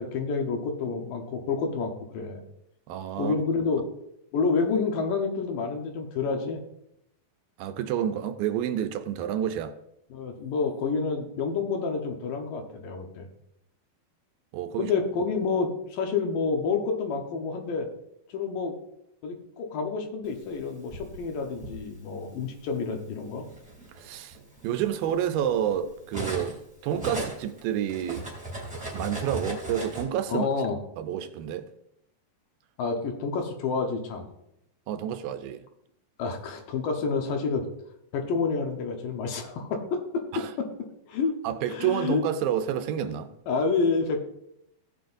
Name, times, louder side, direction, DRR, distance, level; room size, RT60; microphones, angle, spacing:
voice 1, 0.0-2.4 3.1-3.8 4.3-6.6 10.1-13.3 14.8-17.9 18.3-18.7 19.2-23.4 30.3-30.8 32.8-34.3 36.2-37.7 38.1-40.0 40.6-40.7 41.1-41.4 41.7-42.3 43.5-44.2, left 4 dB, 70° left, 2.6 m, -28 dB
voice 2, 2.9-3.3 7.6-9.8 14.5-14.9 24.0-24.4 24.6-28.3 28.9-30.5 31.0-31.7 34.9-35.6 40.3-40.5 41.4-43.3, right 10 dB, 80° right, 2.4 m, -29 dB
Cutlery silverware, 20.5-21.8 22.8-22.9 23.4-26.6 26.9-30.0, right 2 dB, ahead, 2.0 m, -37 dB
16.5 x 7.6 x 2.6 m
omnidirectional pair, 4.3 m